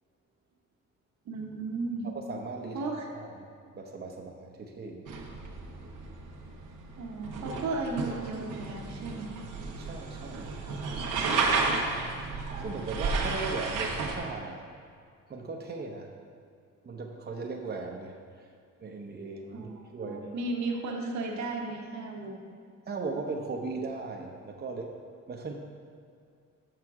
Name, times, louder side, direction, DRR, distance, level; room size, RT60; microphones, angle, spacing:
voice 1, 1.3-2.1 2.7-3.1 7.0-9.4 19.5-22.4, right 3 dB, 65° right, 1 dB, 1.1 m, -35 dB
voice 2, 2.1-3.5 3.7-5.1 9.8-10.6 12.6-14.7 15.3-16.1 16.8-18.2 18.8-20.4 22.9-25.0 25.3-25.6, right 3 dB, 35° right, 1 dB, 0.8 m, -38 dB
sound 1, 5.1-14.2, right 4 dB, 90° right, 1.0 m, -32 dB
6.6 x 6.3 x 4.8 m, 2.3 s
cardioid pair, 90°, 30 cm